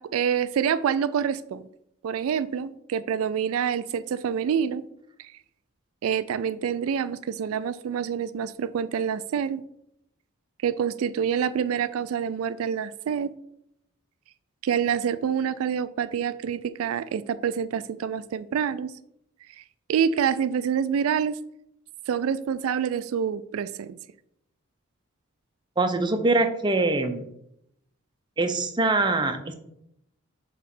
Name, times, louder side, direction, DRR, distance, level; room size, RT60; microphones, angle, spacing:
voice 1, 0.0-1.6 2.0-4.8 5.2-5.3 6.0-9.6 10.6-13.3 14.6-18.9 19.5-19.6 19.9-21.4 22.1-24.0, right 7 dB, 80° right, 14 dB, 0.3 m, -27 dB
voice 2, 25.8-27.2 28.4-29.5, right 2 dB, 20° right, 6 dB, 0.5 m, -23 dB
7.5 x 3.1 x 5.9 m, 0.76 s
head